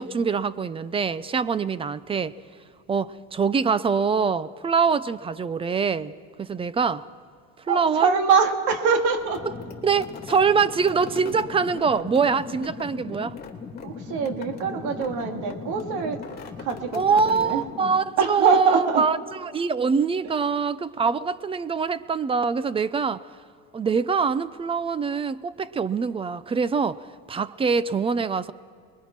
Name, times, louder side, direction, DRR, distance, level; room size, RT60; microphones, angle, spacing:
voice 1, 0.0-2.3 2.9-6.1 6.4-7.1 7.7-8.1 9.8-13.4 16.9-23.2 23.7-27.0 27.3-28.5, right 5 dB, 20° right, 17 dB, 0.5 m, -24 dB
voice 2, 7.7-9.5 11.2-11.3 13.8-16.2 16.6-17.7 18.2-19.0, right 5 dB, 70° right, 5 dB, 2.2 m, -24 dB
sound 1, 9.2-18.2, left 5 dB, 30° left, 3.1 m, -38 dB
29.5 x 21.5 x 5.9 m, 2.2 s
cardioid pair, 135°, 30 cm